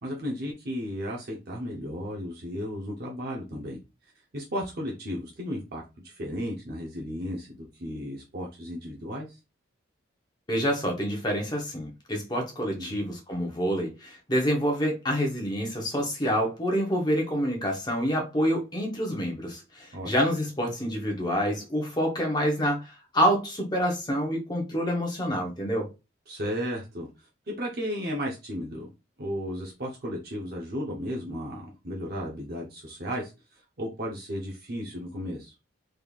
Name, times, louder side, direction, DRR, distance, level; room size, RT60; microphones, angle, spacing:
voice 1, 0.0-3.8 4.3-9.4 12.8-13.0 19.9-20.1 26.3-27.3 27.6-28.9 29.2-35.6, equal, 50° right, 0.7 m, -34 dB
voice 2, 10.5-25.9, equal, 20° left, 0.9 m, -27 dB
3.6 x 3.2 x 2.4 m
head